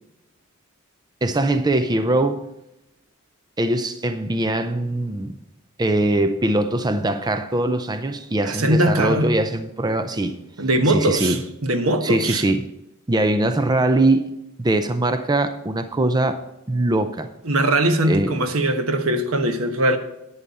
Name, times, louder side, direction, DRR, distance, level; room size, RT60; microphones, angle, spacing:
voice 1, 1.2-2.4 3.6-5.4 5.8-10.4 10.9-11.4 12.0-12.7 13.1-14.3 14.6-16.4 16.7-17.3 18.1-18.3, right 2 dB, 20° right, 0.5 m, -21 dB
voice 2, 8.4-9.3 10.6-12.4 17.4-20.0, right 1 dB, 80° right, 1.1 m, -21 dB
11.0 x 8.9 x 4.2 m
head